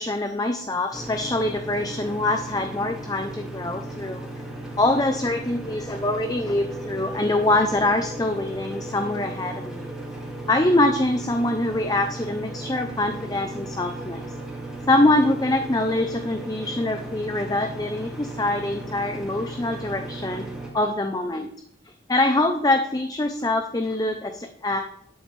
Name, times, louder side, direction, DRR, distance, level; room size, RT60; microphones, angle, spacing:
voice 1, 0.0-4.3 4.8-9.9 10.5-14.2 14.9-20.5 20.7-21.5 22.1-24.8, left 2 dB, 20° left, 6 dB, 0.6 m, -24 dB
sound 1, 0.9-20.7, right 2 dB, 5° right, 2.2 m, -36 dB
11.5 x 8.5 x 3.3 m, 0.70 s
head